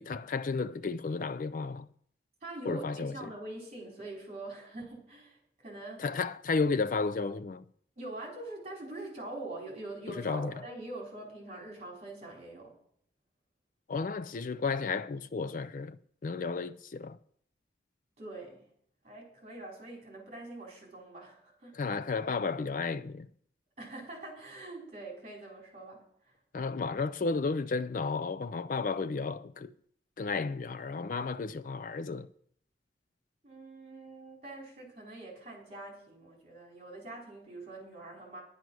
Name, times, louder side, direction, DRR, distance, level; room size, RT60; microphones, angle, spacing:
voice 1, 0.0-1.9 2.7-3.1 6.0-7.6 10.1-10.5 13.9-16.0 16.2-17.2 21.7-23.3 26.5-29.7 30.2-32.3, left 4 dB, 45° left, 0.4 m, -33 dB
voice 2, 2.4-6.0 8.0-12.7 18.2-18.6 19.0-21.7 23.8-26.3 33.4-38.4, right 2 dB, 35° right, 4.3 m, -44 dB
10.5 x 9.4 x 6.2 m
head